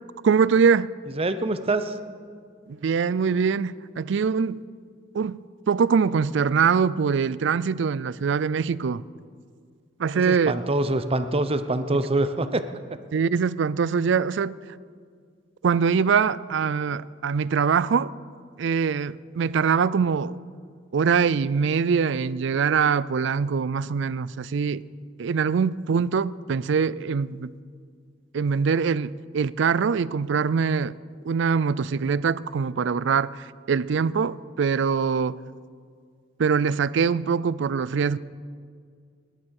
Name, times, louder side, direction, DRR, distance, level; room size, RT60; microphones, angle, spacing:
voice 1, 0.2-0.9 2.7-4.6 5.1-5.4 5.7-9.0 10.0-10.5 13.1-14.6 15.6-18.1 18.6-20.4 20.9-24.8 25.2-27.5 28.3-30.9 31.2-35.4 36.4-38.2, right 6 dB, 70° right, 0.4 m, -23 dB
voice 2, 1.2-2.0 10.1-12.6, right 2 dB, 30° right, 0.8 m, -25 dB
19.0 x 11.5 x 6.5 m
head